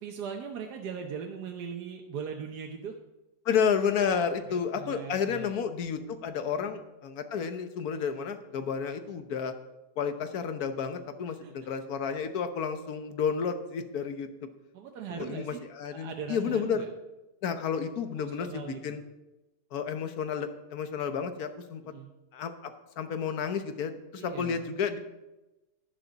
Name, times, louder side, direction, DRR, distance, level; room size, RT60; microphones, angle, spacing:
voice 1, 0.0-2.9 4.5-5.5 6.5-6.8 11.4-11.5 14.7-15.6 15.9-16.9 18.1-19.0 21.8-22.1 24.2-24.6, right 7 dB, 75° right, 2 dB, 1.5 m, -40 dB
voice 2, 3.4-9.5 10.0-14.3 15.2-16.9 17.4-19.0 19.7-21.8 22.3-25.0, left 6 dB, 65° left, 9 dB, 1.4 m, -31 dB
11.5 x 11.0 x 4.1 m, 1.0 s
omnidirectional pair, 1.8 m